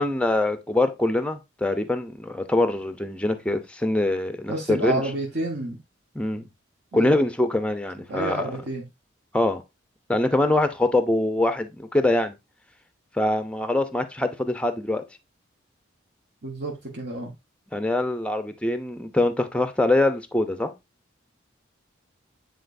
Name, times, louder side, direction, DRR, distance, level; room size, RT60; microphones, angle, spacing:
voice 1, 0.0-5.0 6.1-6.4 6.9-8.5 9.3-9.6 10.1-12.3 13.2-15.0 17.7-20.7, left 1 dB, 5° left, 0.6 m, -24 dB
voice 2, 4.5-5.8 6.9-7.1 8.1-8.8 16.4-17.3, right 2 dB, 55° right, 1.4 m, -29 dB
9.0 x 4.0 x 2.6 m
head